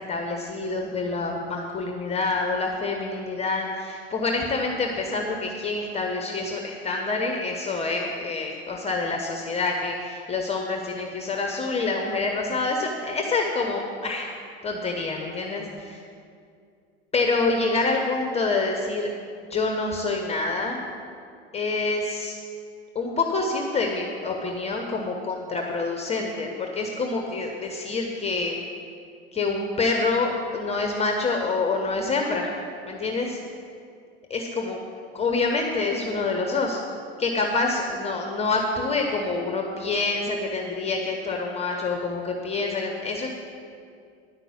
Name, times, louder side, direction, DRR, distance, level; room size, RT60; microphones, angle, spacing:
voice 1, 0.0-14.3 14.6-16.0 17.1-19.1 19.5-20.8 21.5-22.3 22.9-28.5 29.3-32.5 32.8-33.4 34.3-34.8 35.1-36.8 37.2-43.3, left 3 dB, 20° left, 2 dB, 1.1 m, -27 dB
10.5 x 6.0 x 8.6 m, 2.3 s
hypercardioid pair, 85°, 32 cm